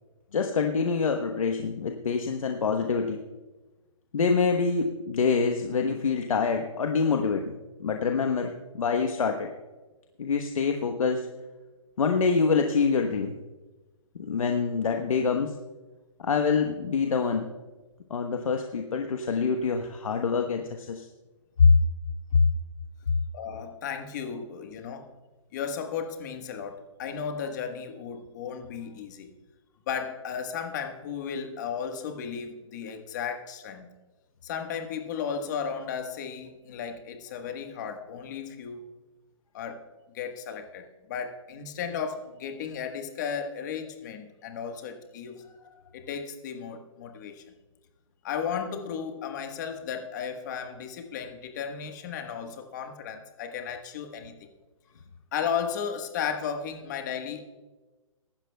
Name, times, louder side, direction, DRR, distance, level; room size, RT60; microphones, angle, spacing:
voice 1, 0.3-3.2 4.1-7.6 7.8-9.5 10.2-11.3 12.0-13.3 14.2-15.5 16.2-17.5 18.1-21.1 21.6-21.7 22.3-22.4, left 5 dB, 80° left, 4 dB, 1.1 m, -25 dB
voice 2, 23.3-25.1 25.5-29.3 29.9-33.9 34.4-38.8 39.5-39.8 40.1-45.4 45.9-47.4 48.2-54.4 55.3-57.4, left 7 dB, 35° left, 5 dB, 1.4 m, -34 dB
23.5 x 12.0 x 2.3 m, 1.2 s
hypercardioid pair, 165°, 17 cm